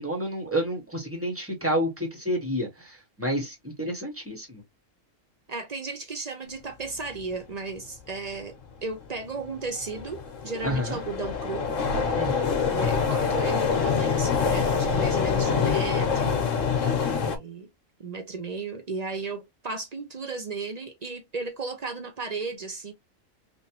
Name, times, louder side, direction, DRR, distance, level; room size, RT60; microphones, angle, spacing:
voice 1, 0.0-4.6 10.6-11.0 12.1-12.5, equal, 10° right, 1.2 m, -29 dB
voice 2, 5.5-11.7 12.7-16.4 17.2-17.7 18.0-22.9, right 4 dB, 40° right, 0.6 m, -35 dB
sound 1, 8.7-8.8 9.4-17.4, left 6 dB, 75° left, 1.2 m, -25 dB
3.5 x 2.5 x 2.8 m
omnidirectional pair, 1.3 m